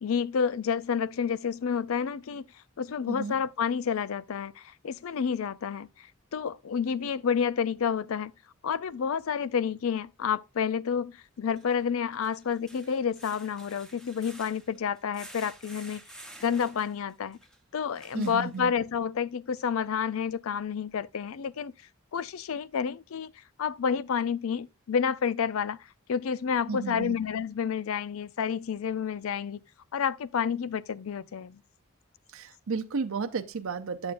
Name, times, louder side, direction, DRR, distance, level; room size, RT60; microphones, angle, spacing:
voice 1, 0.0-2.5 2.8-6.1 6.3-8.3 8.6-16.0 16.4-17.4 17.7-21.7 22.1-23.3 23.6-25.8 26.1-29.6 29.9-31.6, left 7 dB, 75° left, 0.4 m, -29 dB
sound 1, 8.8-8.9 11.4-19.0 19.6-19.7 20.1-20.2, right 1 dB, 5° left, 0.9 m, -51 dB
voice 2, 18.1-18.7 26.7-27.2 32.3-34.1, right 4 dB, 70° right, 0.6 m, -33 dB
8.8 x 7.1 x 2.5 m
head